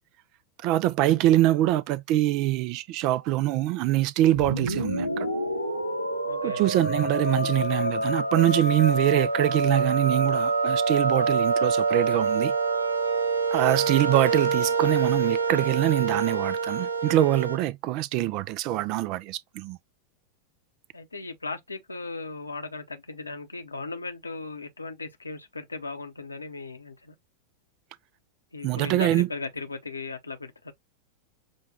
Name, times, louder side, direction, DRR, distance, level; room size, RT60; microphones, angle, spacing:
voice 1, 0.6-5.3 6.4-12.5 13.5-19.8 28.6-29.3, right 15 dB, 40° right, 0.3 m, -24 dB
sound 1, 4.3-17.6, right 3 dB, 85° right, 0.7 m, -26 dB
voice 2, 6.3-6.6 20.9-27.1 28.5-30.7, left 3 dB, 80° left, 0.8 m, -37 dB
6.3 x 2.2 x 2.9 m
figure-of-eight pair, 90°, 0 cm